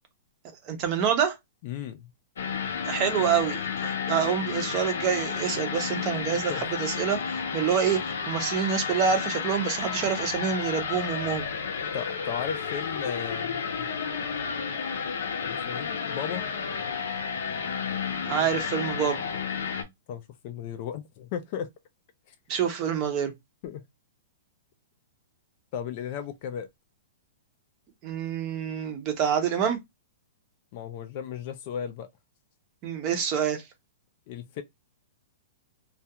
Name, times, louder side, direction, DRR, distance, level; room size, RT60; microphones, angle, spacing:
voice 1, 0.6-1.4 2.8-8.0 8.3-11.5 18.2-19.2 22.5-23.3 28.0-29.8 32.8-33.6, right 7 dB, 25° right, 0.6 m, -27 dB
voice 2, 1.6-2.1 6.5-6.7 11.9-13.9 15.4-16.5 20.1-21.7 22.3-22.4 23.6-23.8 25.7-26.7 30.7-32.1 34.3-34.6, left 8 dB, 30° left, 0.3 m, -35 dB
sound 1, 2.4-19.8, left 6 dB, 85° left, 0.7 m, -32 dB
2.3 x 2.2 x 2.7 m
hypercardioid pair, 175°, 0 cm